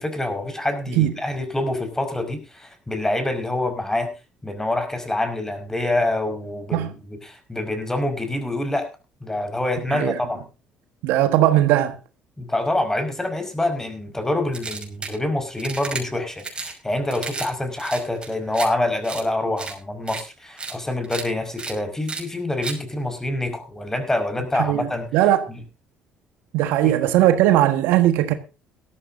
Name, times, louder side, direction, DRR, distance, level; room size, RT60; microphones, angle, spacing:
voice 1, 0.0-4.1 4.4-8.9 9.2-10.4 12.4-25.1 26.8-27.0, left 1 dB, 15° left, 5.3 m, -26 dB
voice 2, 11.0-12.0 24.5-25.5 26.5-28.3, right 13 dB, 75° right, 1.4 m, -19 dB
sound 1, 14.5-15.2 15.6-16.0 16.4-16.7 17.1-17.5 17.7-18.7 19.0-19.2 19.6-19.7 20.1-20.2 20.6-20.7 21.0-21.2 21.6-21.7 22.1-22.2 22.6-22.8, right 4 dB, 25° right, 5.8 m, -32 dB
17.5 x 13.5 x 2.7 m
hypercardioid pair, 60°, 4 cm